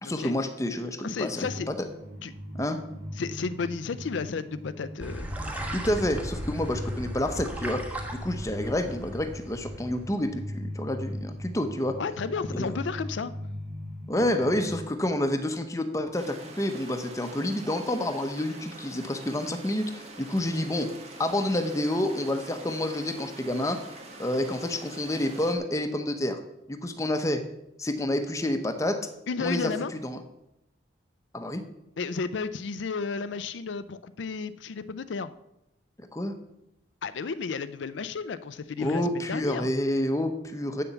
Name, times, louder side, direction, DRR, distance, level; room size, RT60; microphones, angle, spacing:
voice 1, 0.0-1.9 2.5-2.8 5.7-7.8 8.1-12.0 12.5-12.7 14.1-20.9 21.2-23.8 24.2-26.4 26.7-27.4 27.8-29.0 29.4-29.7 30.0-30.2 31.3-31.6 36.1-36.3 38.8-40.8, left 1 dB, 15° left, 7 dB, 0.8 m, -28 dB
voice 2, 1.0-1.7 2.2-2.3 3.1-5.3 12.0-13.3 29.3-29.9 32.0-35.3 37.0-39.7, left 5 dB, 75° left, 13 dB, 0.5 m, -32 dB
sound 1, 1.4-14.9, equal, 80° right, 4.1 m, -40 dB
sound 2, 5.0-10.3, equal, 10° right, 1.3 m, -37 dB
sound 3, 16.1-25.5, right 2 dB, 35° right, 1.9 m, -45 dB
8.4 x 7.0 x 7.0 m, 0.86 s
head